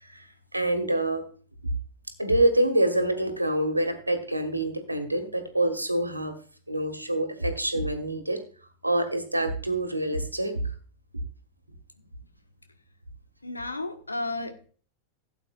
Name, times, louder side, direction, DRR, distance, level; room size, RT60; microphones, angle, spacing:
voice 1, 0.5-1.3 2.2-6.4 6.7-8.4 8.8-10.7, right 1 dB, 85° right, 7 dB, 1.7 m, -26 dB
voice 2, 13.4-14.7, left 2 dB, 80° left, 6 dB, 1.4 m, -33 dB
16.5 x 8.4 x 2.4 m, 0.41 s
figure-of-eight pair, 90°, 0 cm